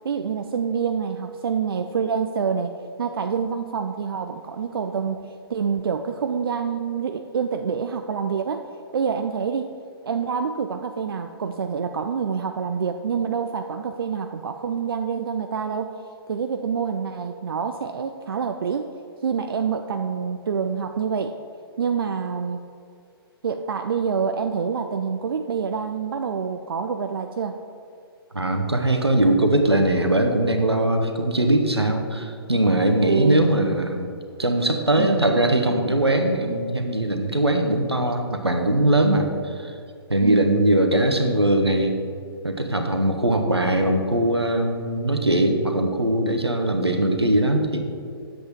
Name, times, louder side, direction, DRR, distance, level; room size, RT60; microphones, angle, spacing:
voice 1, 0.0-2.7 3.0-8.7 8.9-9.7 10.0-15.9 16.3-18.9 19.2-21.4 21.8-22.6 23.4-27.6 33.0-33.8 35.0-35.3 40.2-40.6, right 6 dB, 65° right, 7 dB, 0.4 m, -27 dB
voice 2, 28.3-34.1 34.4-39.7 40.1-42.0 42.4-47.8, right 1 dB, 90° right, 4 dB, 1.0 m, -21 dB
10.0 x 7.6 x 3.6 m, 2.4 s
figure-of-eight pair, 120°, 13 cm